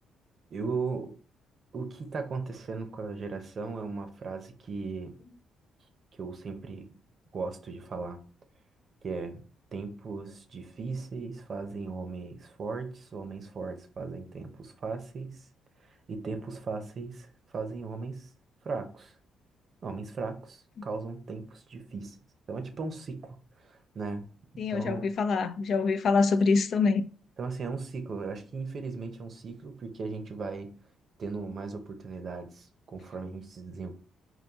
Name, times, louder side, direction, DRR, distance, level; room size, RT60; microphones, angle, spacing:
voice 1, 0.5-1.1 1.7-5.1 6.1-6.9 7.3-8.2 9.0-9.4 9.7-15.4 15.9-18.3 18.6-19.2 19.8-22.2 22.5-25.1 27.4-30.7 31.2-33.9, right 4 dB, 50° right, 0.7 m, -37 dB
voice 2, 24.6-27.0, left 4 dB, 60° left, 0.4 m, -25 dB
4.0 x 2.5 x 3.5 m
cardioid pair, 90°, 0 cm